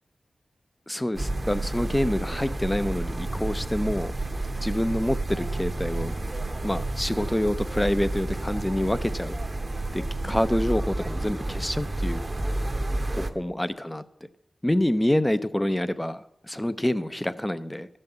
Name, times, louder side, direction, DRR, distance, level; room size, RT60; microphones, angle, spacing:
voice 1, 0.9-4.1 4.6-6.1 6.6-9.3 9.9-12.3 13.1-14.0 14.6-17.9, left 1 dB, 10° left, 14 dB, 0.6 m, -27 dB
sound 1, 1.1-13.3, right 2 dB, 35° right, 0.8 m, -30 dB
12.5 x 5.5 x 7.9 m, 0.84 s
wide cardioid pair, 70°, 0 cm